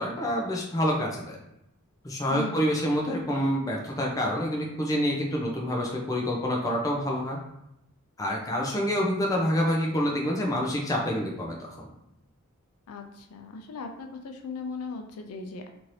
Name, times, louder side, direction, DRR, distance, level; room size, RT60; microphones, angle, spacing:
voice 1, 0.0-1.4 2.0-7.4 8.2-11.9, equal, 15° left, -2 dB, 0.4 m, -27 dB
voice 2, 2.3-2.7 12.9-15.7, left 3 dB, 85° left, 4 dB, 0.4 m, -38 dB
2.8 x 2.6 x 3.1 m, 0.83 s
head